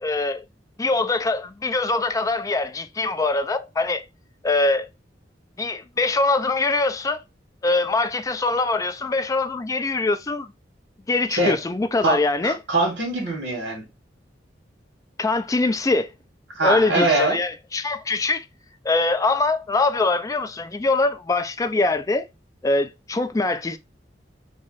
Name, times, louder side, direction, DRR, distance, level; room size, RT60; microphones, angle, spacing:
voice 1, 0.0-0.4 0.8-4.0 4.4-4.9 5.6-7.2 7.6-10.5 11.1-12.6 15.2-16.1 16.6-18.5 18.8-22.2 22.6-23.8, left 3 dB, 20° left, 0.3 m, -23 dB
voice 2, 12.4-13.8 16.6-17.4, right 2 dB, 75° right, 1.6 m, -22 dB
3.1 x 2.7 x 3.9 m
head